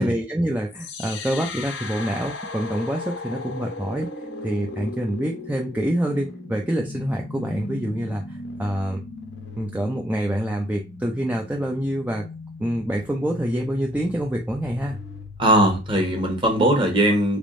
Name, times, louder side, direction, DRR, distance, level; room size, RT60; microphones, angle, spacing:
voice 1, 0.0-4.1 4.4-9.0 9.6-12.3 12.6-15.0, right 1 dB, 10° right, 0.4 m, -26 dB
sound 1, 0.7-16.7, left 3 dB, 85° left, 0.9 m, -37 dB
voice 2, 15.4-17.4, right 1 dB, 30° right, 1.2 m, -19 dB
3.5 x 3.4 x 2.5 m
head